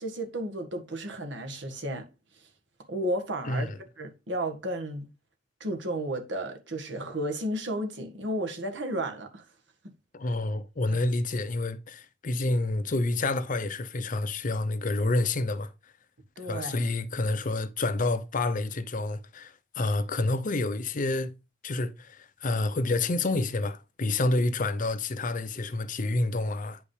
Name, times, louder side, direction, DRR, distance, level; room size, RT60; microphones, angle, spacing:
voice 1, 0.0-2.1 2.9-3.7 4.0-5.1 5.6-9.4 10.9-11.0 16.4-16.9, right 1 dB, 70° right, 1.7 m, -33 dB
voice 2, 3.5-3.8 10.1-15.7 16.5-21.4 21.6-26.8, left 2 dB, 45° left, 0.6 m, -28 dB
9.5 x 5.3 x 3.3 m
head